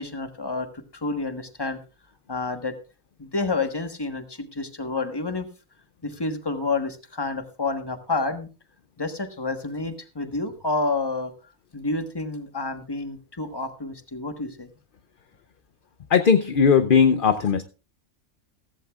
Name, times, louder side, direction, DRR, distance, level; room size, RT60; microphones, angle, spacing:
voice 1, 0.0-1.8 2.3-2.8 3.2-5.5 6.0-8.5 9.0-14.7, left 3 dB, 20° left, 7 dB, 1.3 m, -29 dB
voice 2, 16.1-17.6, left 6 dB, 50° left, 10 dB, 0.7 m, -18 dB
15.5 x 14.5 x 2.4 m, 0.33 s
omnidirectional pair, 1.4 m